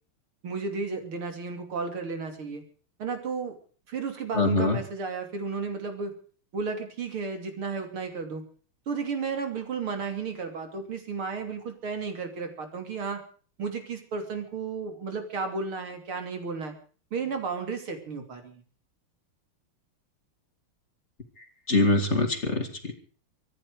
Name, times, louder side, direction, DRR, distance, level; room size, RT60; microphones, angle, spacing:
voice 1, 0.4-2.6 3.0-3.5 3.9-6.1 6.5-8.5 8.9-13.2 13.6-16.8 17.1-18.6, right 5 dB, 80° right, 5 dB, 3.7 m, -33 dB
voice 2, 4.4-4.8 21.7-22.9, left 2 dB, 35° left, 6 dB, 2.5 m, -24 dB
25.0 x 11.0 x 4.8 m, 0.43 s
omnidirectional pair, 2.3 m